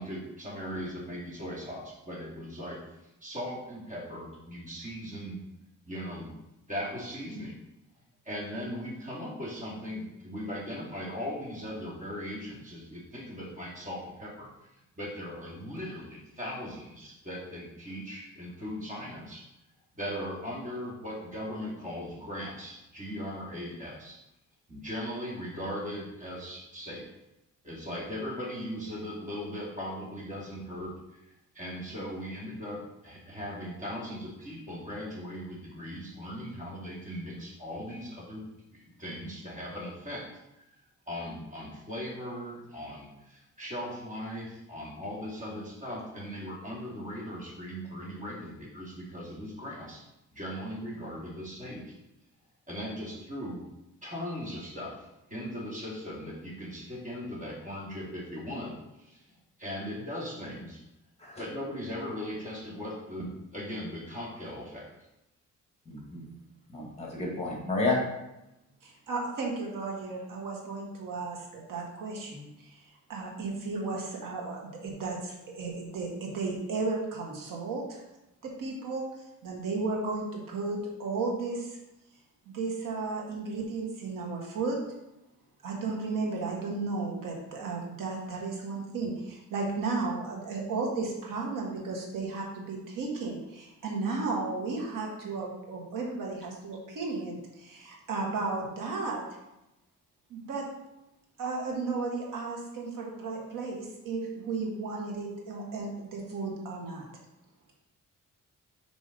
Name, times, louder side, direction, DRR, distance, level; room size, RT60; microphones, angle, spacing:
voice 1, 0.0-2.8 3.2-5.4 5.9-6.3 6.7-7.6 8.2-14.5 14.9-19.5 20.0-24.2 24.7-27.1 27.6-40.2 40.5-40.6 41.1-50.1 50.3-52.0 52.7-53.6 54.0-55.0 55.3-60.8 61.4-64.9, equal, 25° right, -4 dB, 2.6 m, -39 dB
voice 2, 65.9-66.2 66.7-68.0, left 3 dB, 20° left, -2 dB, 2.2 m, -30 dB
voice 3, 68.8-78.0 78.4-81.8 82.5-84.8 85.6-99.4 100.3-100.7 101.4-107.1, right 3 dB, 85° right, -1 dB, 1.7 m, -34 dB
5.5 x 5.0 x 5.2 m, 0.91 s
cardioid pair, 115°, 31 cm